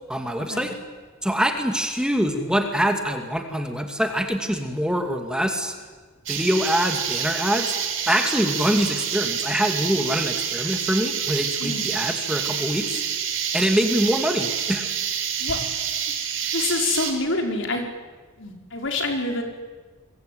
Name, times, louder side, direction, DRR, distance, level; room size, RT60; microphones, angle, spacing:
voice 1, 0.1-0.7 1.2-5.7 6.3-7.7 8.1-13.0 13.5-14.9, equal, 5° right, 5 dB, 2.4 m, -24 dB
sound 1, 6.3-17.1, right 8 dB, 70° right, 4.5 m, -28 dB
voice 2, 11.6-11.9 15.4-15.6 16.5-17.8 18.4-19.4, left 2 dB, 70° left, 3 dB, 5.0 m, -26 dB
27.5 x 23.0 x 9.5 m, 1.4 s
head